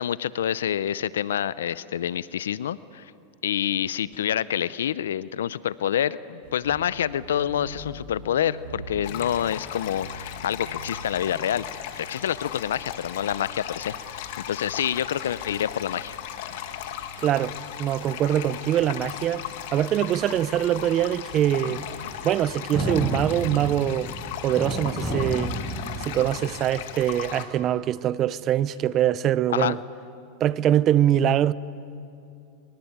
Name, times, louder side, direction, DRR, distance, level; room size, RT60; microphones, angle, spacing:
voice 1, 0.0-3.1 3.4-11.6 12.0-16.2 29.5-29.8, left 10 dB, 85° left, 0.6 m, -27 dB
sound 1, 6.4-11.4, right 2 dB, 70° right, 5.8 m, -42 dB
sound 2, 9.0-27.5, left 10 dB, 65° left, 2.2 m, -37 dB
voice 2, 17.2-19.4 19.7-21.8 22.2-24.1 24.4-25.5 26.0-29.8 30.4-31.5, right 11 dB, 40° right, 0.7 m, -23 dB
sound 3, 21.8-26.6, equal, ahead, 6.1 m, -32 dB
23.5 x 23.5 x 8.9 m
hypercardioid pair, 110°, 0 cm